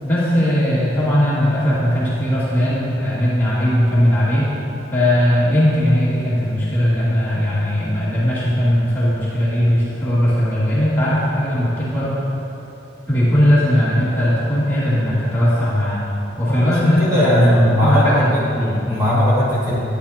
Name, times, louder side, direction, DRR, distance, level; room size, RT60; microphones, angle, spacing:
voice 1, 0.0-4.5 4.9-12.1 13.1-16.0 16.4-17.0 17.3-18.8, equal, 10° left, -11 dB, 2.2 m, -18 dB
voice 2, 16.5-18.4 18.8-19.7, left 1 dB, 20° right, -10 dB, 2.1 m, -18 dB
12.0 x 9.9 x 2.9 m, 2.9 s
head